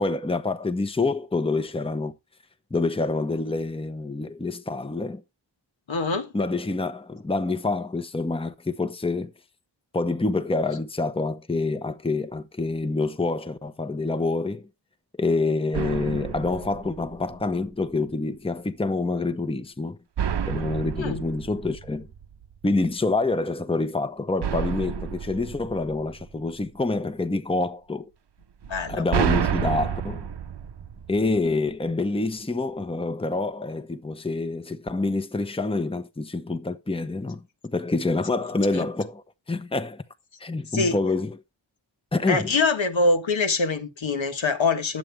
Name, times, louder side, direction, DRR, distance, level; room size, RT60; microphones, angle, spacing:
voice 1, 0.0-2.1 2.7-5.2 6.3-9.3 9.9-14.7 15.2-20.0 20.4-22.1 22.6-28.1 28.9-30.3 31.1-40.0 40.4-41.4 42.1-42.5, left 3 dB, 10° left, 0.9 m, -27 dB
voice 2, 5.9-6.3 21.0-21.2 28.7-29.0 38.7-38.8 40.7-41.0 42.3-45.0, left 3 dB, 75° left, 1.6 m, -24 dB
sound 1, 15.7-17.6 20.2-22.6 24.4-26.7 28.6-31.7, right 8 dB, 60° right, 0.7 m, -30 dB
10.5 x 7.8 x 3.4 m
wide cardioid pair, 70°, 46 cm